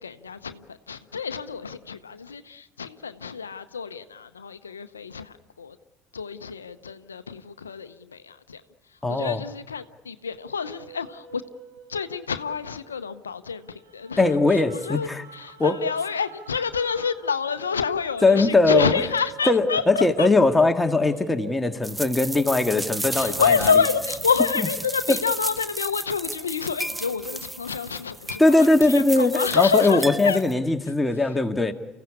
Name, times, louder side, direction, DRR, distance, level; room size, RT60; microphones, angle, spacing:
voice 1, 0.0-5.8 6.1-8.6 9.1-11.4 11.9-13.6 13.9-14.2 14.5-20.3 23.1-30.4, left 6 dB, 90° left, 11 dB, 0.7 m, -28 dB
voice 2, 9.0-9.4 14.2-15.2 15.6-15.8 18.2-18.9 19.5-23.7 24.6-24.7 25.1-25.2 28.4-31.7, left 2 dB, 10° left, 6 dB, 1.8 m, -20 dB
sound 1, 10.6-24.4 24.8-26.4, right 9 dB, 80° right, 5.2 m, -48 dB
sound 2, 21.8-30.5, right 1 dB, 10° right, 0.8 m, -33 dB
sound 3, 23.0-27.1, right 2 dB, 35° right, 5.0 m, -47 dB
29.5 x 15.5 x 8.6 m, 1.2 s
hypercardioid pair, 70°, 0 cm